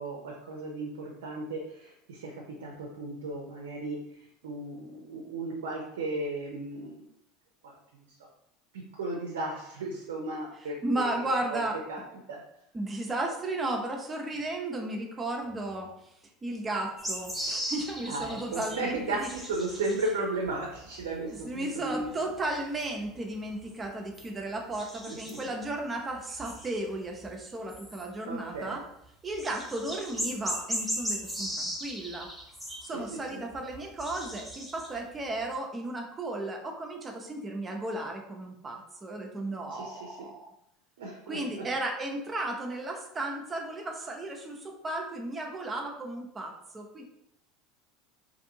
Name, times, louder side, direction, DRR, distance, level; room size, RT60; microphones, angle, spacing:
voice 1, 0.0-2.3 2.6-7.1 7.6-7.8 8.7-11.6 11.9-12.0 12.3-12.4 18.1-22.1 25.1-25.4 28.3-28.8 32.9-33.0 33.3-33.4 39.7-40.3 41.0-41.6, right 2 dB, 75° right, 0 dB, 0.5 m, -35 dB
voice 2, 10.6-11.8 12.7-15.9 16.4-19.3 21.4-28.8 29.2-32.3 32.8-40.5 41.3-47.0, right 2 dB, 25° right, 2 dB, 0.6 m, -34 dB
sound 1, 17.0-20.2 20.5-22.1 22.3-22.5 22.8-24.3 24.7-25.7 26.2-27.3 27.7-28.1 29.0-29.1 29.3-32.9 33.3-35.3, equal, ahead, 0.9 m, -37 dB
2.6 x 2.6 x 2.6 m, 0.76 s
hypercardioid pair, 80°, 0 cm